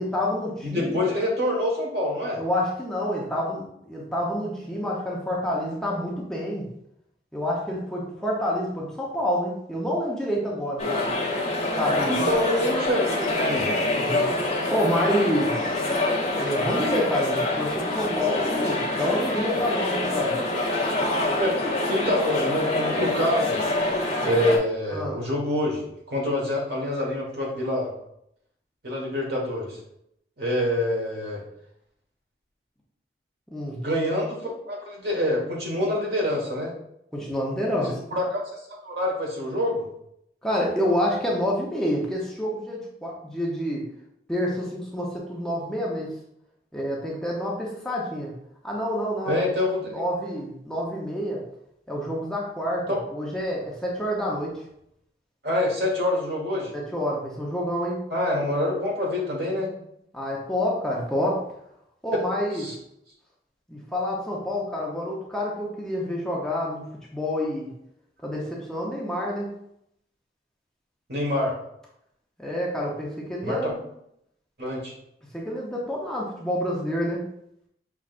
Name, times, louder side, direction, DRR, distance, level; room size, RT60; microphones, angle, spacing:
voice 1, 0.0-1.0 2.4-6.7 7.3-11.1 11.7-12.3 13.9-15.8 16.4-20.3 24.9-25.2 33.5-33.8 37.1-38.0 40.4-43.8 44.3-46.1 46.7-48.3 48.6-49.4 49.9-51.4 51.9-52.8 53.1-54.5 56.7-58.0 60.1-61.4 62.0-62.7 63.7-66.8 67.1-67.7 68.2-69.5 72.4-73.8 75.3-77.2, equal, 5° left, -4 dB, 0.7 m, -28 dB
voice 2, 0.6-2.4 12.1-13.7 21.3-21.6 21.9-23.6 24.2-27.9 28.8-29.8 30.4-31.4 33.8-36.7 37.8-38.2 38.5-39.8 49.3-50.0 52.9-53.0 55.4-56.7 58.1-59.7 62.6-62.7 71.1-71.5 73.4-73.7 74.6-74.9, left 1 dB, 70° right, -2 dB, 1.4 m, -26 dB
sound 1, 10.8-24.6, left 2 dB, 35° left, 0.9 m, -26 dB
5.8 x 3.2 x 2.5 m, 0.75 s
head